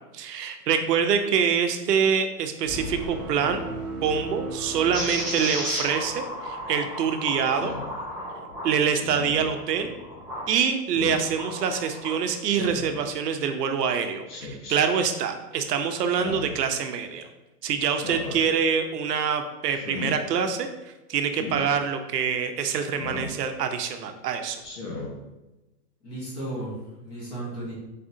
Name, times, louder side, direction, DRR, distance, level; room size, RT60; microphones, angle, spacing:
voice 1, 0.1-3.6 4.0-7.7 8.6-9.9 10.5-17.3 17.6-20.7 21.1-24.6, right 7 dB, 80° right, 7 dB, 0.7 m, -25 dB
sound 1, 2.6-6.1, right 2 dB, 25° right, 0.7 m, -36 dB
sound 2, 4.9-10.5 11.0-12.2, equal, ahead, 1.3 m, -34 dB
Speech synthesizer, 7.5-7.9 9.0-9.5 10.9-11.2 12.4-12.9 14.3-14.8 16.0-16.6 17.9-18.4 19.7-20.1 21.3-21.6 23.0-23.4 24.6-25.1, left 3 dB, 65° left, 1.2 m, -36 dB
voice 2, 26.0-27.7, right 1 dB, 25° left, -8 dB, 1.1 m, -35 dB
4.1 x 3.6 x 2.7 m, 1.0 s
hypercardioid pair, 175°, 48 cm